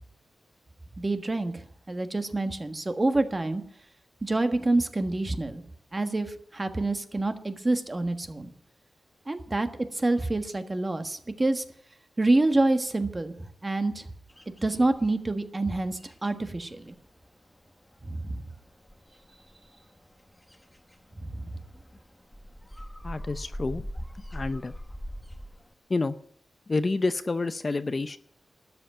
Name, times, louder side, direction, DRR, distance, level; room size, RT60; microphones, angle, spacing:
voice 1, 1.0-3.6 4.2-5.6 5.9-8.5 9.3-9.7 9.9-11.6 12.2-13.3 13.6-14.0 14.6-17.0 18.0-18.4 21.3-21.5, right 2 dB, 25° right, 8 dB, 1.4 m, -27 dB
sound 1, 14.3-15.4 15.7-25.7, equal, 10° left, 1.0 m, -43 dB
voice 2, 23.0-23.9 24.3-24.7 25.9-26.2 26.7-28.2, left 3 dB, 30° left, 12 dB, 0.5 m, -28 dB
12.5 x 8.1 x 9.9 m, 0.64 s
wide cardioid pair, 120°, 0 cm